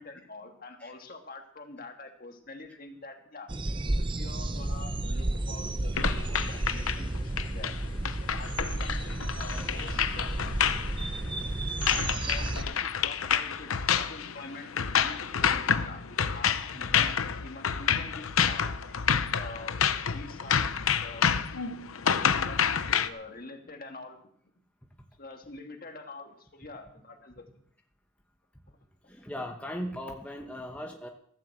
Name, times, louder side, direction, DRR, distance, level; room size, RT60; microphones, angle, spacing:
voice 1, 0.0-3.5 4.0-7.8 8.3-10.5 12.1-18.8 19.3-20.7 21.0-21.3 22.2-24.2 25.2-27.5, left 2 dB, 45° left, 4 dB, 1.8 m, -46 dB
sound 1, 3.5-12.6, right 2 dB, 25° right, 0.6 m, -32 dB
sound 2, 6.0-23.1, left 7 dB, 90° left, 0.8 m, -28 dB
voice 2, 29.0-31.1, equal, 5° left, 1 dB, 1.1 m, -38 dB
15.5 x 7.4 x 7.8 m, 0.65 s
head